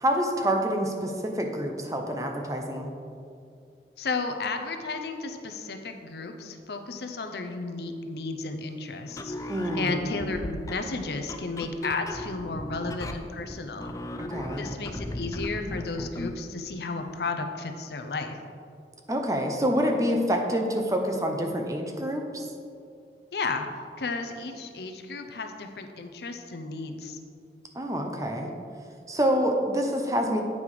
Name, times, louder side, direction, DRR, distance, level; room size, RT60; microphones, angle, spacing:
voice 1, 0.0-2.9 9.5-10.0 14.2-14.7 19.1-22.5 27.8-28.5 29.1-30.4, equal, 20° right, 3 dB, 0.6 m, -27 dB
voice 2, 4.0-9.4 9.7-13.9 14.6-18.4 23.3-23.7 24.0-27.2, left 3 dB, 70° left, 6 dB, 0.6 m, -33 dB
sound 1, 9.1-16.4, left 1 dB, 20° left, 0.3 m, -37 dB
8.5 x 5.4 x 4.8 m, 2.4 s
head